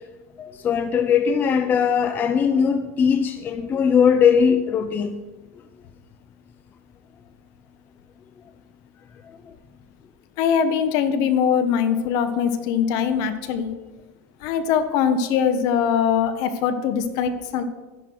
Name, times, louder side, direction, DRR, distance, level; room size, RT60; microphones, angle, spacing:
voice 1, 0.4-5.2, left 7 dB, 25° left, 7 dB, 0.6 m, -20 dB
voice 2, 10.4-13.7 14.4-17.6, left 7 dB, 50° left, 9 dB, 1.4 m, -22 dB
13.0 x 11.0 x 4.7 m, 1.2 s
supercardioid pair, 135°, 8 cm